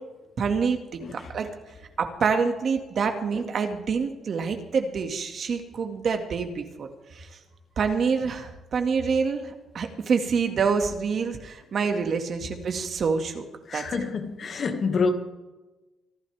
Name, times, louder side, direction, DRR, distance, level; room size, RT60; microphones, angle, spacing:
voice 1, 0.4-1.5 2.0-7.3 7.8-13.4 13.7-14.1, right 5 dB, 55° right, 2.0 m, -27 dB
voice 2, 13.7-15.1, left 4 dB, 50° left, 2.0 m, -27 dB
25.0 x 11.5 x 3.5 m
cardioid pair, 90°, 0 cm